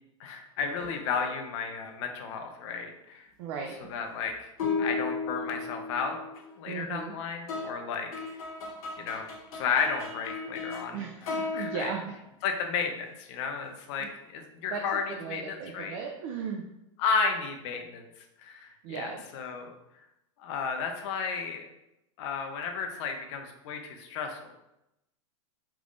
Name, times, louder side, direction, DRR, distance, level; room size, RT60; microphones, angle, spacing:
voice 1, 0.2-3.3 3.9-4.5 4.8-6.2 6.6-8.2 9.0-11.0 11.5-11.9 12.4-16.0 17.0-18.0 18.4-19.7 20.4-21.6 22.2-24.5, left 5 dB, 55° left, 4 dB, 0.6 m, -33 dB
sound 1, 0.8-1.5 4.6-6.5 7.5-10.9 11.2-12.0, left 4 dB, 80° left, 1.1 m, -35 dB
voice 2, 3.4-3.8 6.7-7.1 10.9-12.0 14.0-14.1 14.7-16.6 18.8-19.2, right 6 dB, 55° right, 1 dB, 0.4 m, -36 dB
3.4 x 3.1 x 2.5 m, 0.89 s
supercardioid pair, 145°, 18 cm